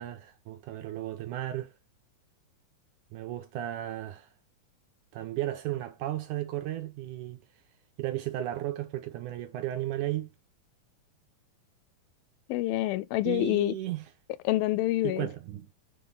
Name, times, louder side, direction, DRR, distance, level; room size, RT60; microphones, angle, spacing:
voice 1, 0.0-1.7 3.1-4.3 5.1-7.4 8.0-10.3 13.3-14.1 15.0-15.7, right 14 dB, 75° right, 1.9 m, -34 dB
voice 2, 12.5-13.7 14.5-15.3, left 15 dB, 85° left, 2.3 m, -27 dB
7.1 x 3.5 x 5.5 m
omnidirectional pair, 4.1 m